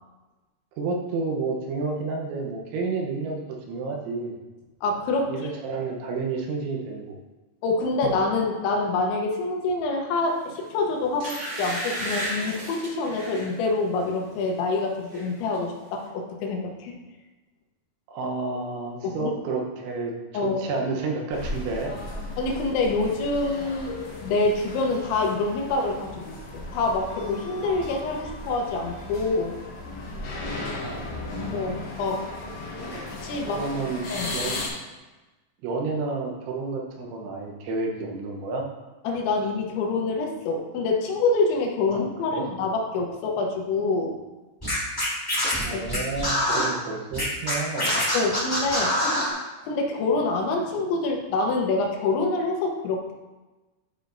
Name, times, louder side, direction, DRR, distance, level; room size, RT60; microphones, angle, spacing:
voice 1, 0.8-4.4 5.3-7.1 18.1-21.9 30.8-31.5 32.8-33.0 33.5-34.6 35.6-38.7 41.9-42.0 42.3-42.4 45.6-48.0, right 3 dB, 85° right, 1 dB, 3.4 m, -30 dB
voice 2, 4.8-5.5 7.6-16.9 19.0-19.3 20.3-20.6 22.4-29.6 31.5-32.3 32.8-32.9 33.2-33.6 34.1-34.4 39.0-44.2 45.7-46.0 48.1-49.0 49.6-53.1, left 3 dB, 80° left, 1 dB, 3.3 m, -26 dB
sound 1, 10.5-10.7 11.2-13.5 14.0-14.2 14.5-15.3 15.5-15.6, right 1 dB, 40° right, 1.8 m, -33 dB
sound 2, 21.3-34.7, left 2 dB, 60° left, 1.9 m, -36 dB
Scratching (performance technique), 44.6-46.7 47.1-49.3, left 1 dB, 25° left, 0.5 m, -25 dB
12.0 x 4.9 x 2.6 m, 1.1 s
omnidirectional pair, 5.3 m